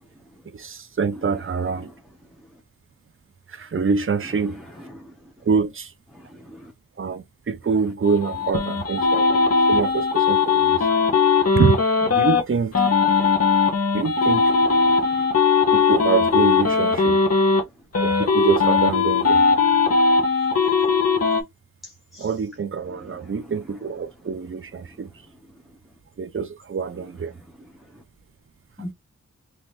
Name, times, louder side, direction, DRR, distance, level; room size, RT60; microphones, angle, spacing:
voice 1, 0.5-1.9 3.5-4.6 5.4-5.9 7.0-10.9 11.5-12.7 13.9-14.5 15.7-17.2 18.0-19.4 22.2-25.1 26.2-27.4, right 5 dB, 40° right, 0.6 m, -25 dB
voice 2, 6.1-6.7 14.8-15.3 22.1-22.3 28.8-28.9, equal, ahead, 1.0 m, -40 dB
sound 1, 8.0-12.4 12.7-17.6 17.9-21.4, left 5 dB, 50° left, 1.2 m, -19 dB
3.7 x 2.9 x 3.1 m
wide cardioid pair, 65°, 31 cm